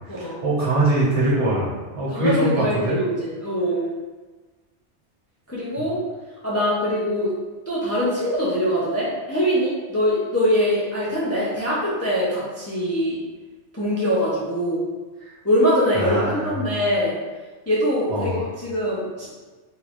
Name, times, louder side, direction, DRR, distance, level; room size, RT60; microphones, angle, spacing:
voice 1, 0.1-3.0 15.2-15.3 15.9-16.6 18.1-18.5, right 1 dB, 70° right, -6 dB, 1.3 m, -23 dB
voice 2, 2.1-3.9 5.5-6.0 6.4-7.3 7.7-13.2 13.7-14.9 15.4-17.1 17.7-18.3 18.6-19.3, equal, 20° left, -7 dB, 0.4 m, -23 dB
3.5 x 3.0 x 2.5 m, 1.3 s
omnidirectional pair, 1.2 m